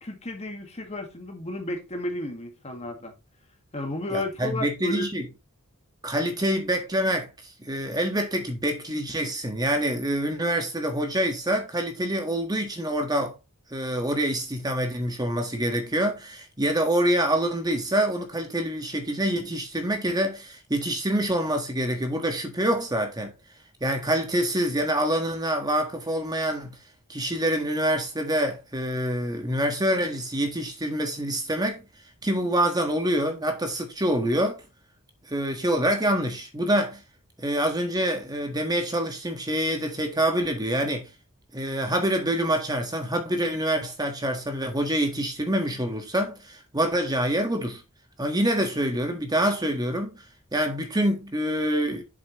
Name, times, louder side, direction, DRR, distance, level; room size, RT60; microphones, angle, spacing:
voice 1, 0.0-3.1 3.7-5.1, left 1 dB, 30° left, 1.9 m, -32 dB
voice 2, 4.1-5.3 6.0-7.3 7.6-13.3 13.7-23.3 23.8-26.7 27.1-31.8 32.2-34.6 35.3-37.0 37.4-41.1 41.5-47.8 48.2-50.1 50.5-52.0, right 1 dB, 20° right, 1.5 m, -26 dB
8.0 x 7.3 x 3.1 m
head